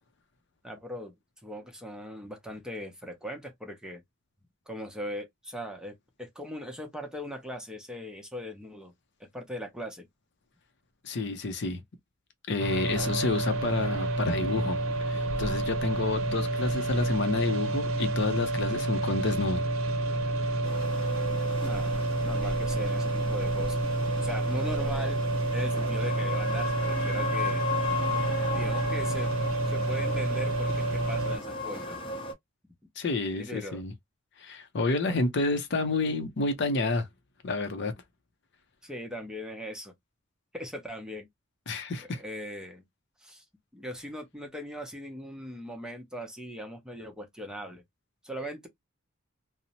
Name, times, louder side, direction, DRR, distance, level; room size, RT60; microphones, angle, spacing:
voice 1, 0.6-1.1 1.4-4.0 4.7-8.9 9.3-10.1 12.9-13.1 21.6-23.8 24.2-25.2 25.5-27.7 28.5-29.3 29.6-32.1 33.3-33.8 35.0-35.2 38.8-39.9 40.5-41.3 42.0-42.8 43.2-43.4 43.7-47.8 48.2-48.7, equal, 5° right, 0.6 m, -39 dB
voice 2, 11.0-11.8 12.5-14.8 15.1-19.6 20.1-20.3 33.0-33.9 34.4-37.1 37.4-37.9 41.7-42.2, left 3 dB, 60° left, 0.6 m, -29 dB
sound 1, 12.6-31.4, right 2 dB, 90° right, 0.6 m, -29 dB
sound 2, 20.6-32.3, left 2 dB, 25° left, 0.7 m, -36 dB
2.7 x 2.0 x 2.7 m
head